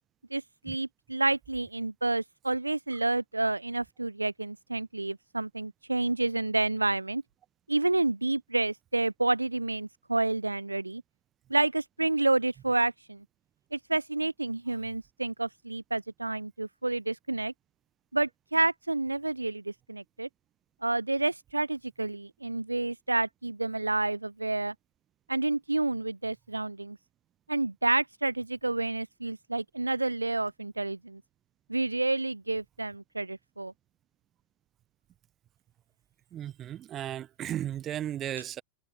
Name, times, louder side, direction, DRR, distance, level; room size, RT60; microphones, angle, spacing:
voice 1, 0.3-7.2 7.7-11.0 11.5-13.2 13.7-17.5 18.1-20.3 20.8-24.7 25.3-27.0 27.5-31.2 31.7-33.7, right 2 dB, 85° right, 0.6 m, -29 dB
voice 2, 36.3-38.6, right 11 dB, 30° right, 1.2 m, -35 dB
figure-of-eight pair, 90°, 0 cm